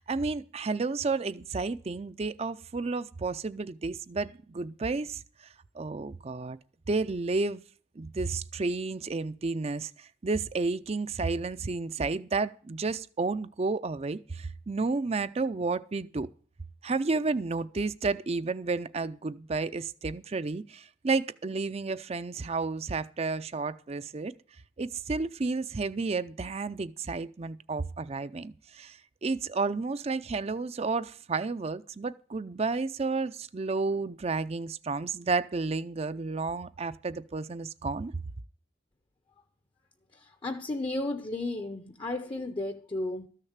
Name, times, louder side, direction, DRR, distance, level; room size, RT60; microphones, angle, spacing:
voice 1, 0.0-5.2 5.7-6.6 6.9-7.6 8.0-16.3 16.8-24.3 24.8-38.2, right 3 dB, 30° right, 0.4 m, -31 dB
voice 2, 40.4-43.3, left 2 dB, 25° left, 0.7 m, -33 dB
13.5 x 6.6 x 7.2 m
head